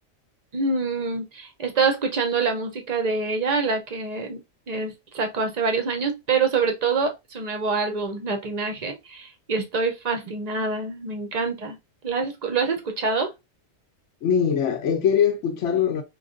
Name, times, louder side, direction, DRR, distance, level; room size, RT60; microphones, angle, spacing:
voice 1, 0.5-4.4 4.7-11.8 12.0-13.3, right 4 dB, 45° right, 0.6 m, -26 dB
voice 2, 14.2-16.0, left 8 dB, 70° left, 0.9 m, -22 dB
4.5 x 2.4 x 2.5 m
omnidirectional pair, 1.4 m